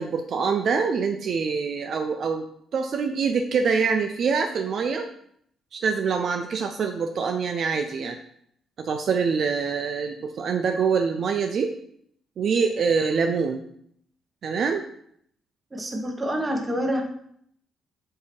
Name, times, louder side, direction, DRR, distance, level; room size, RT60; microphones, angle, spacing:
voice 1, 0.0-2.5 2.7-5.1 5.7-8.2 8.8-11.7 12.4-13.6 14.4-14.8, right 5 dB, 60° right, 5 dB, 0.5 m, -25 dB
voice 2, 15.7-17.0, equal, 20° right, 3 dB, 1.3 m, -27 dB
7.6 x 2.9 x 4.5 m, 0.68 s
cardioid pair, 90°, 0 cm